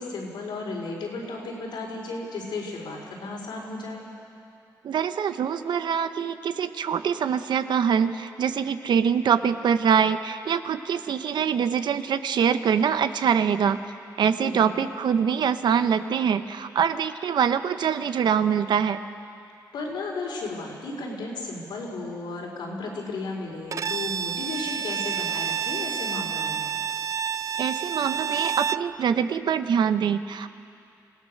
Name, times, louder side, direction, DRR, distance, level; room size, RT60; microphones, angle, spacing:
voice 1, 0.0-4.0 14.4-14.9 19.7-26.7, left 3 dB, 85° left, -2 dB, 4.6 m, -34 dB
voice 2, 4.8-13.8 14.2-19.0 27.6-30.5, right 7 dB, 75° right, 11 dB, 0.9 m, -24 dB
Bowed string instrument, 23.7-28.9, right 7 dB, 45° right, 0.4 m, -29 dB
26.0 x 17.0 x 6.6 m, 2.4 s
cardioid pair, 75°, 8 cm